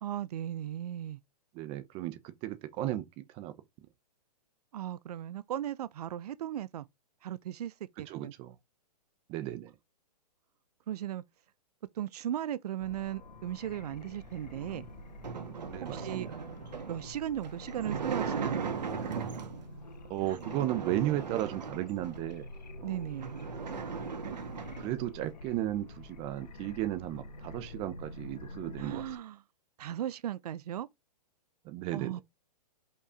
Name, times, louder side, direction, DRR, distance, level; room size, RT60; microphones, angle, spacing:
voice 1, 0.0-1.2 4.7-6.9 7.2-8.3 10.9-11.2 11.9-14.9 15.8-16.3 16.9-18.7 20.2-20.4 22.8-23.3 28.8-29.4 29.8-30.9 31.9-32.2, right 11 dB, 70° right, 0.6 m, -37 dB
voice 2, 1.5-3.5 8.1-8.5 9.3-9.7 15.7-16.3 19.0-19.5 20.1-22.5 22.9-23.0 24.2-29.0 31.6-32.1, right 14 dB, 30° right, 0.8 m, -35 dB
sound 1, 12.8-29.2, left 2 dB, 90° left, 1.6 m, -48 dB
sound 2, 14.5-19.7 20.3-22.3 22.8-22.9 23.1-25.0, right 6 dB, 90° right, 2.0 m, -38 dB
5.5 x 4.7 x 5.0 m
hypercardioid pair, 145°, 21 cm